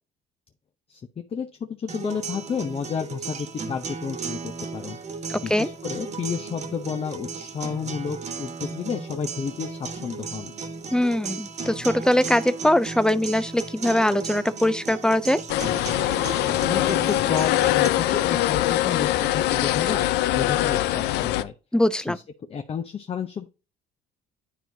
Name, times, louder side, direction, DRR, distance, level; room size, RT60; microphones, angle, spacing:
voice 1, 0.9-5.0 5.4-10.5 16.5-20.1 20.3-21.5 22.0-22.2 22.5-23.5, left 6 dB, 35° left, 0.7 m, -31 dB
sound 1, 1.9-17.9, right 4 dB, 40° right, 1.3 m, -35 dB
voice 2, 5.3-5.7 10.9-15.4 21.7-22.2, left 1 dB, 5° left, 0.3 m, -22 dB
sound 2, 15.5-21.4, left 14 dB, 85° left, 0.5 m, -23 dB
9.9 x 4.6 x 2.7 m
cardioid pair, 110°, 17 cm